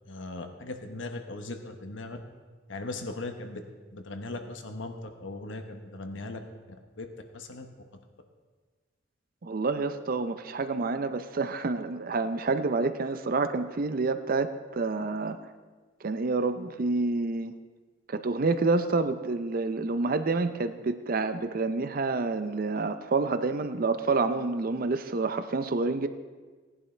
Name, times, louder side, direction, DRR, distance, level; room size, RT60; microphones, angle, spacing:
voice 1, 0.1-2.2 2.7-3.6 3.9-4.9 5.2-6.4 7.0-7.1 7.3-7.7, left 2 dB, 85° left, 6 dB, 1.0 m, -38 dB
voice 2, 9.4-15.4 16.0-17.5 18.1-26.1, right 3 dB, 50° right, 10 dB, 0.5 m, -28 dB
18.0 x 11.0 x 3.3 m, 1.4 s
head